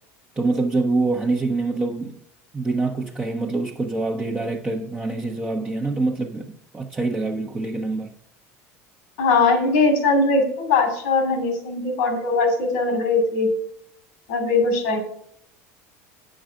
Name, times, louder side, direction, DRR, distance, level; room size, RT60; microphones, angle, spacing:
voice 1, 0.4-2.2 2.5-8.1, right 3 dB, 15° right, 1.0 m, -25 dB
voice 2, 9.2-13.5 14.3-15.0, left 3 dB, 80° left, 2.5 m, -20 dB
8.8 x 6.4 x 5.1 m
hypercardioid pair, 85°, 8 cm